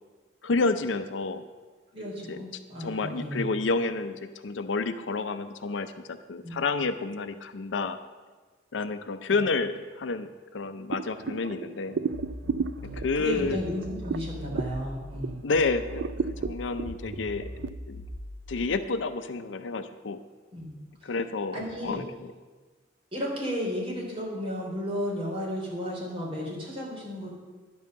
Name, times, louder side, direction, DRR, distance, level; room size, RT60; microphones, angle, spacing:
voice 1, 0.4-1.4 2.3-2.4 2.8-8.0 8.7-12.0 12.9-13.6 15.4-16.1 16.4-17.5 17.9-18.0 18.5-20.2 21.0-22.1, left 3 dB, 85° left, 10 dB, 0.5 m, -29 dB
voice 2, 1.9-3.5 6.4-6.6 9.3-9.4 13.1-15.4 20.5-20.7 21.0-21.1 21.5-22.0 23.1-27.3, equal, 30° right, -4 dB, 3.2 m, -33 dB
sound 1, 10.9-15.5 15.9-17.7, right 5 dB, 70° right, 0.4 m, -34 dB
sound 2, 12.1-15.1 15.5-18.6, left 1 dB, 25° left, 1.0 m, -41 dB
10.5 x 5.5 x 7.6 m, 1.3 s
head